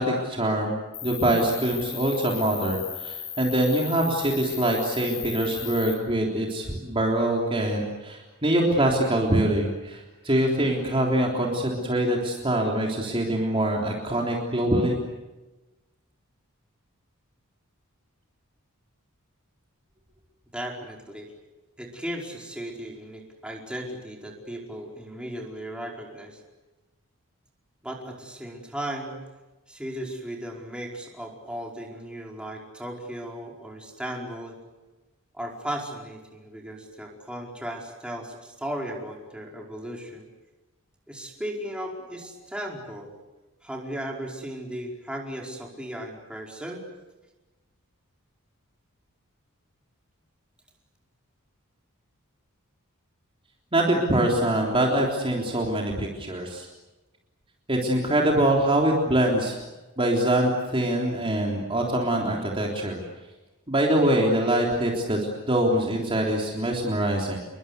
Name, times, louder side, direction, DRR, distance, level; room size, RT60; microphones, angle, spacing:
voice 1, 0.0-15.0 53.7-56.7 57.7-59.6 60.0-63.0 63.7-67.4, right 1 dB, 25° right, -1 dB, 3.5 m, -24 dB
Cricket, 0.9-5.9, left 8 dB, 35° left, 5.6 m, -37 dB
voice 2, 20.5-21.3 21.8-26.4 27.8-29.1 29.7-34.6 35.3-40.2 41.1-43.1 43.6-46.8, equal, 5° right, 0 dB, 4.8 m, -36 dB
29.5 x 23.0 x 8.2 m, 1.1 s
head